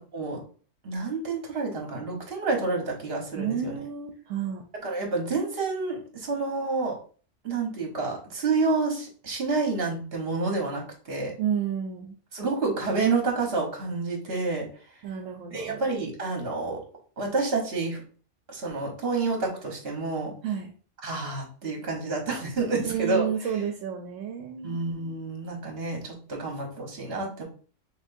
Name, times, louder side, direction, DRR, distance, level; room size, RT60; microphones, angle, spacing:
voice 1, 0.8-3.7 4.8-7.0 7.4-11.3 12.3-14.7 15.5-16.8 17.2-18.0 18.5-20.4 21.0-23.3 24.6-27.4, right 3 dB, 55° right, 1 dB, 1.4 m, -29 dB
voice 2, 3.3-4.6 11.4-12.1 15.0-15.8 20.4-20.7 22.8-24.9, right 8 dB, 80° right, 3 dB, 1.0 m, -31 dB
6.0 x 2.5 x 2.6 m, 0.40 s
omnidirectional pair, 1.3 m